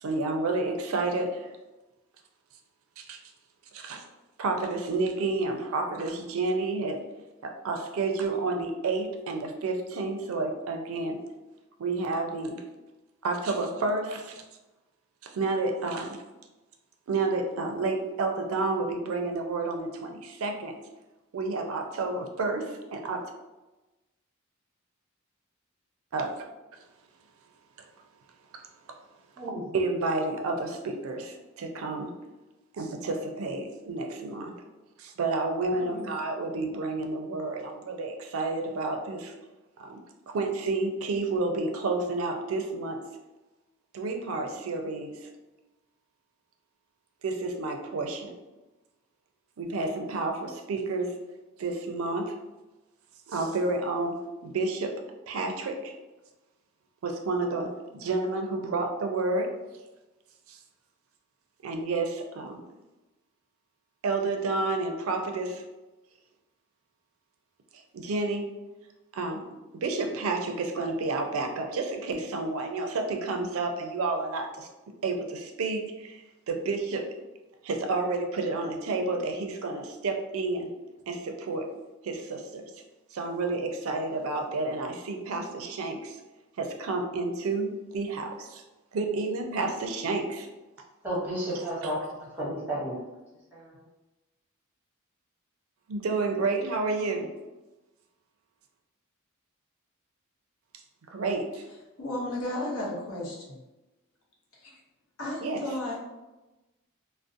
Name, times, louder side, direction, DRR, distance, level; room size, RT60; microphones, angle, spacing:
voice 1, 0.0-1.5 3.0-3.2 3.7-4.0 4.4-7.0 7.4-11.2 11.8-12.6 13.2-14.4 15.2-16.2 17.1-20.7 21.3-23.2 26.1-26.3 29.7-32.1 32.7-34.5 35.0-39.3 39.8-40.0 40.3-43.0 43.9-45.3 47.2-48.3 49.6-51.2 51.6-52.4 53.3-54.2 54.4-54.9 55.3-55.9 57.0-59.5 60.5-60.6 61.6-62.6 64.0-65.6 67.9-68.5 69.1-69.4 69.8-74.7 75.0-77.0 77.6-80.7 81.1-81.7 82.0-82.6 83.1-86.2 86.6-88.6 88.9-90.5 91.8-91.9 95.9-97.3 101.1-101.5 105.4-105.6, right 3 dB, 70° right, 4 dB, 0.4 m, -30 dB
voice 2, 91.0-91.9 92.4-92.9 93.5-93.6, right 1 dB, 10° right, -6 dB, 0.7 m, -32 dB
voice 3, 102.0-103.6 104.5-104.7 105.2-106.0, left 1 dB, 75° left, -3 dB, 0.7 m, -33 dB
2.6 x 2.0 x 2.4 m, 1.1 s
head